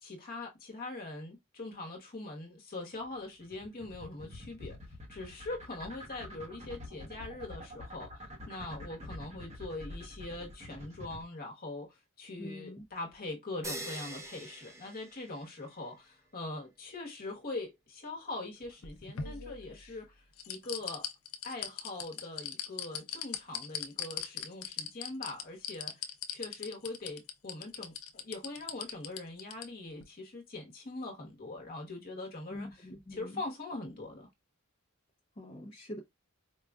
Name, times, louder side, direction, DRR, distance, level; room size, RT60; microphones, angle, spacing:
voice 1, 0.0-4.8 5.1-21.1 21.4-32.9 33.1-34.3, left 2 dB, 45° left, 1.1 m, -42 dB
sound 1, 3.0-11.2, left 1 dB, 30° right, 0.8 m, -46 dB
voice 2, 12.4-12.8 32.5-33.4 35.4-36.0, left 1 dB, 25° left, 0.7 m, -44 dB
sound 2, 13.6-15.8, right 1 dB, 15° right, 0.6 m, -43 dB
sound 3, 18.6-19.9 20.4-29.7 30.0-30.1, left 8 dB, 75° left, 0.6 m, -39 dB
4.7 x 2.3 x 2.4 m
head